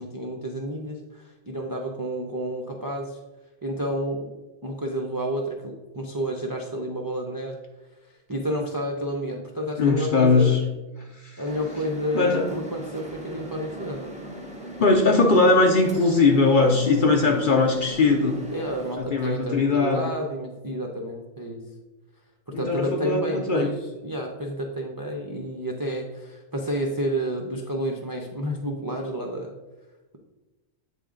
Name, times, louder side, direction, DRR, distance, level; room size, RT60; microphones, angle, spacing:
voice 1, 0.0-3.2 3.6-4.3 4.6-7.5 8.0-10.6 11.4-14.0 18.5-21.6 22.5-29.5, right 1 dB, 35° right, 0 dB, 0.3 m, -30 dB
voice 2, 9.8-10.6 11.2-11.4 12.1-12.5 14.8-18.4 19.0-20.1 22.5-23.7, left 3 dB, 50° left, 2 dB, 0.7 m, -20 dB
sound 1, 11.4-18.9, right 1 dB, 5° right, 0.7 m, -39 dB
8.3 x 3.6 x 3.7 m, 1.1 s
omnidirectional pair, 1.4 m